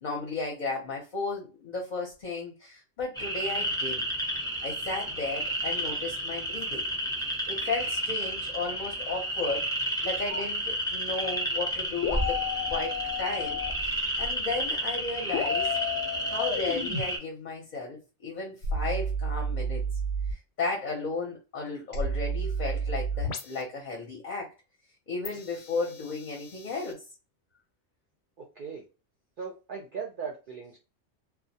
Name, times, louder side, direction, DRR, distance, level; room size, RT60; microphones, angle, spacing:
voice 1, 0.0-4.0 4.6-6.9 7.5-9.7 10.0-12.4 12.7-15.8 16.3-19.8 20.3-24.5 25.1-27.0, left 3 dB, 50° left, 0.7 m, -34 dB
Spring Peeper Frogs, 3.2-17.2, right 1 dB, 5° left, 0.4 m, -31 dB
sound 1, 10.3-10.4 12.0-13.7 15.3-17.0 18.6-20.3 21.9-23.6 25.2-26.9, equal, 85° left, 0.9 m, -32 dB
voice 2, 28.4-28.8 29.4-30.8, right 6 dB, 60° right, 0.6 m, -38 dB
2.3 x 2.0 x 2.7 m
omnidirectional pair, 1.2 m